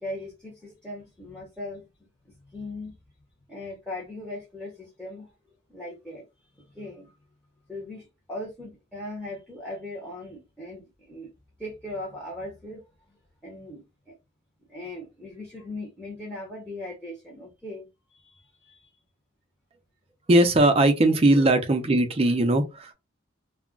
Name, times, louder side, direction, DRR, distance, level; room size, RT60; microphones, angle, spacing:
voice 1, 0.0-1.9 2.2-3.0 3.5-5.3 5.7-6.2 6.5-7.1 7.7-11.3 11.6-12.8 13.1-13.2 13.4-14.1 14.7-18.9, left 1 dB, 5° left, 0.7 m, -39 dB
voice 2, 20.3-22.9, right 1 dB, 30° right, 0.4 m, -20 dB
2.3 x 2.1 x 3.6 m
head